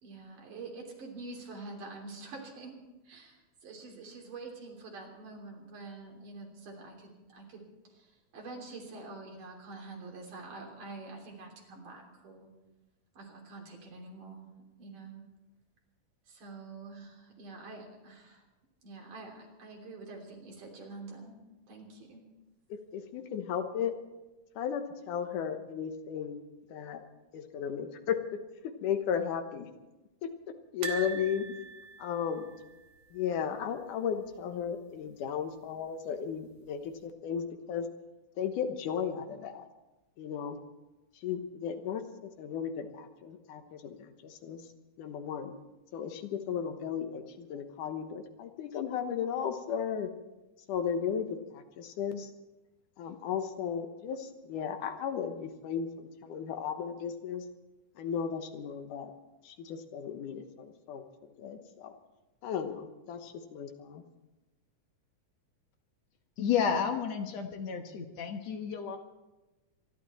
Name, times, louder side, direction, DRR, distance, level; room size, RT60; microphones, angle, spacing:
voice 1, 0.0-12.5 13.1-14.5 14.8-15.2 16.3-18.4 18.8-21.4 21.7-22.2, right 3 dB, 85° right, 0 dB, 4.8 m, -46 dB
voice 2, 22.7-23.9 24.6-26.4 26.7-27.0 27.3-28.2 28.6-29.7 30.2-30.3 30.7-31.5 32.0-32.5 33.1-37.9 38.4-39.7 40.2-40.6 41.2-42.0 42.4-44.7 45.0-45.5 45.9-50.1 50.7-52.3 53.0-57.4 58.0-59.1 59.4-61.9 62.4-64.0, left 7 dB, 90° left, 7 dB, 2.7 m, -35 dB
sound 1, 30.8-33.9 34.1-34.3 34.6-34.7 35.9-36.5 37.0-37.1, right 5 dB, 55° right, 1.9 m, -42 dB
voice 3, 66.4-69.0, left 7 dB, 65° left, 5 dB, 2.2 m, -31 dB
25.5 x 11.5 x 4.4 m, 1.1 s
omnidirectional pair, 3.6 m